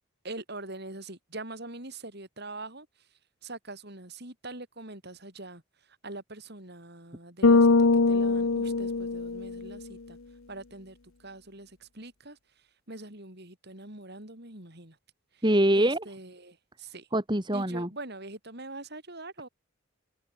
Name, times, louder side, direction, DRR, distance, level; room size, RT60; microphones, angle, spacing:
voice 1, 0.2-7.7 8.1-10.2 10.5-15.0 15.3-15.4 15.7-17.1 17.5-19.5, right 2 dB, 50° right, 6.2 m, -43 dB
Bass guitar, 7.4-9.8, left 3 dB, 80° left, 0.9 m, -22 dB
voice 2, 15.4-16.0 17.1-17.9, right 1 dB, 20° right, 3.9 m, -24 dB
head